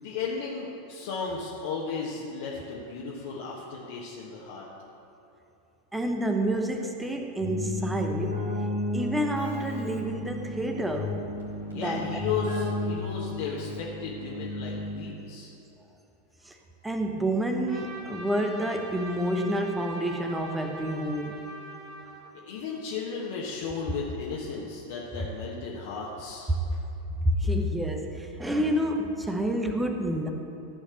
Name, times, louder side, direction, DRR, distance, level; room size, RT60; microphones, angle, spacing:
voice 1, 0.0-4.7 11.7-15.5 16.4-16.5 22.5-26.5, left 5 dB, 55° left, -5 dB, 1.4 m, -35 dB
voice 2, 5.9-8.5 8.9-11.2 11.7-12.1 16.4-16.5 16.8-21.5 26.5-26.6 27.2-30.3, right 1 dB, 10° right, 4 dB, 0.9 m, -28 dB
Keyboard (musical), 7.4-15.3, left 1 dB, 70° right, 2.5 m, -33 dB
Trumpet, 17.7-22.4, right 1 dB, 35° right, 1.7 m, -43 dB
14.0 x 5.2 x 6.5 m, 3.0 s
figure-of-eight pair, 90°, 0 cm